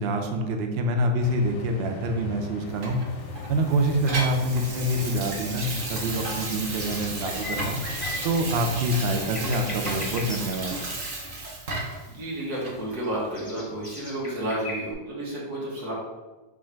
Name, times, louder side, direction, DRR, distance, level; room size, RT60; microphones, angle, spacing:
voice 1, 0.0-3.0 3.5-7.8 8.2-10.8, right 1 dB, 90° right, 4 dB, 0.5 m, -26 dB
sound 1, 1.2-10.3, left 4 dB, 70° left, 0.8 m, -39 dB
Water tap faucet / Sink (filling or washing), 2.8-12.1 12.6-12.8, right 2 dB, 50° right, 0.7 m, -34 dB
sound 2, 5.9-14.9, left 2 dB, 30° left, 0.6 m, -40 dB
voice 2, 12.1-15.9, right 1 dB, 65° right, -5 dB, 1.8 m, -31 dB
4.3 x 2.4 x 4.4 m, 1.2 s
omnidirectional pair, 1.7 m